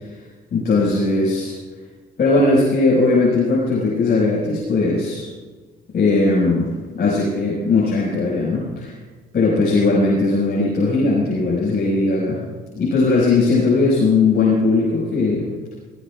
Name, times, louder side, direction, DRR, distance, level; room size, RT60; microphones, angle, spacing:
voice 1, 0.5-1.5 2.2-5.3 5.9-6.7 6.9-8.9 9.3-12.4 12.8-15.4, left 3 dB, 55° left, -6 dB, 5.8 m, -18 dB
20.5 x 18.0 x 2.5 m, 1.4 s
cardioid pair, 90°, 20 cm